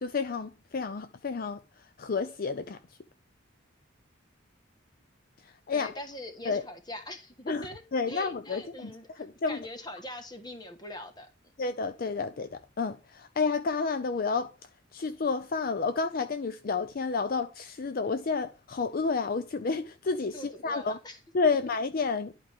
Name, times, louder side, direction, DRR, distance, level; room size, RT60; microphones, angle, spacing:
voice 1, 0.0-1.6 2.0-2.8 5.4-5.9 6.5-6.6 7.5-7.7 7.9-8.9 9.4-9.6 11.6-14.5 14.9-21.0 21.3-22.3, left 4 dB, 45° left, 0.5 m, -30 dB
voice 2, 5.7-11.3 20.3-21.2, left 1 dB, 20° left, 1.4 m, -42 dB
11.0 x 4.8 x 3.5 m
head